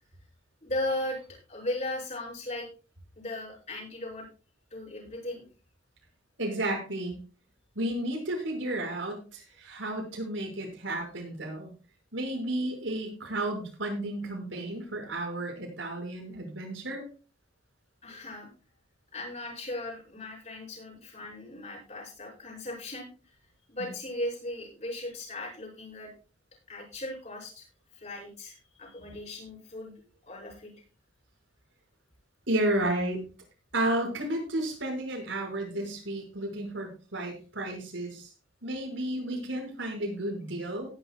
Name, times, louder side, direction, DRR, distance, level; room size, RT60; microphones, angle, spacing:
voice 1, 0.6-1.2 1.5-2.7 3.2-4.3 4.7-5.4 18.0-18.5 19.1-23.1 23.7-26.1 26.7-27.7 27.9-29.9 30.2-30.7 35.7-35.8, left 1 dB, 35° left, -2 dB, 7.5 m, -37 dB
voice 2, 6.4-7.2 7.8-11.7 12.1-17.1 23.8-23.9 32.5-33.2 33.7-38.3 38.6-40.9, right 1 dB, 90° right, 1 dB, 5.9 m, -32 dB
18.0 x 11.0 x 2.3 m, 0.35 s
head